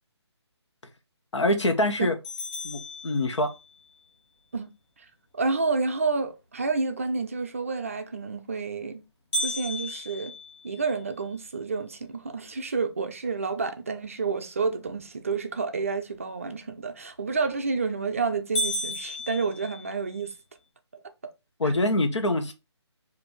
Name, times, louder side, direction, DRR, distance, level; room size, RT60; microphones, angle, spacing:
voice 1, 1.3-2.1 2.6-3.5 21.6-22.5, left 1 dB, 85° left, 1.0 m, -24 dB
sound 1, 2.2-3.8 9.3-11.5 12.0-12.1 12.6-12.7 13.3-13.7 17.3-17.7 18.1-18.2 18.6-20.3, equal, 20° left, 1.0 m, -34 dB
voice 2, 5.3-9.0 9.4-10.3 10.6-20.3 21.6-21.7, right 4 dB, 30° right, 0.4 m, -29 dB
5.1 x 2.6 x 3.1 m
hypercardioid pair, 170°, 15 cm